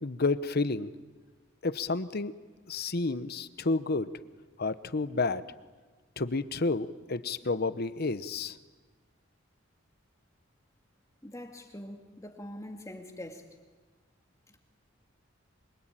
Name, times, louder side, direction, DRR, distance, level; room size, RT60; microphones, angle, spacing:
voice 1, 0.0-0.9 1.6-2.3 2.7-4.1 4.6-5.5 6.2-8.6, left 3 dB, 55° left, 14 dB, 1.0 m, -30 dB
voice 2, 11.2-13.4, left 1 dB, 15° left, 3 dB, 2.1 m, -43 dB
26.0 x 23.5 x 9.0 m, 1.4 s
head